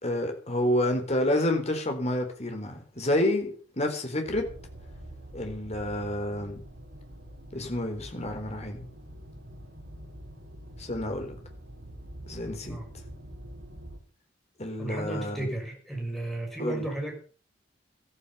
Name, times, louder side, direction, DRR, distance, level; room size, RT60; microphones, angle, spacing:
voice 1, 0.0-4.5 5.3-6.6 7.5-8.9 10.8-11.4 12.3-12.8 14.6-15.5 16.6-16.8, left 1 dB, 35° left, 5 dB, 4.1 m, -29 dB
sound 1, 4.3-14.0, equal, 75° right, 4.8 m, -45 dB
voice 2, 14.8-17.2, right 2 dB, ahead, 1 dB, 6.3 m, -34 dB
14.5 x 14.5 x 5.7 m, 0.40 s
head